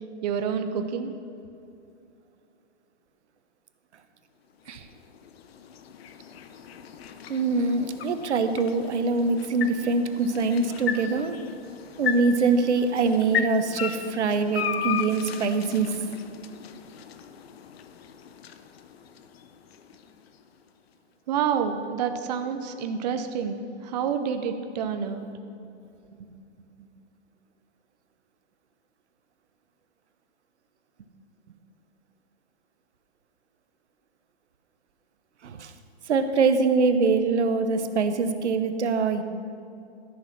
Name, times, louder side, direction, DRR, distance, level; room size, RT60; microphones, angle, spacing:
voice 1, 0.2-1.1 21.3-25.3, right 7 dB, 40° right, 7 dB, 0.7 m, -28 dB
sound 1, 4.5-20.7, left 8 dB, 60° left, 0.8 m, -36 dB
voice 2, 7.3-11.4 12.0-15.9 35.4-35.7 36.1-39.2, right 4 dB, 90° right, 9 dB, 1.0 m, -24 dB
13.0 x 6.1 x 5.8 m, 2.7 s
hypercardioid pair, 150°, 34 cm